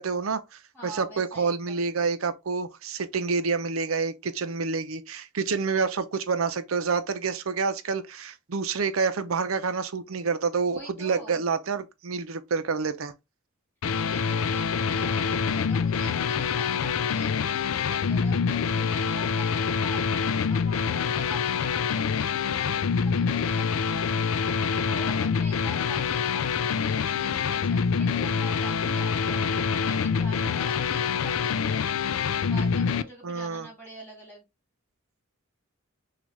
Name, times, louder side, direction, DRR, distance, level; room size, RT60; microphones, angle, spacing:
voice 1, 0.0-13.1 33.2-33.7, right 5 dB, 85° right, 0.6 m, -28 dB
voice 2, 0.7-1.9 10.7-11.4 14.0-20.0 20.5-24.5 24.8-31.8 32.5-34.4, right 1 dB, 10° left, 2.7 m, -44 dB
sound 1, 13.8-33.0, left 6 dB, 80° left, 0.4 m, -26 dB
6.2 x 2.4 x 3.2 m
head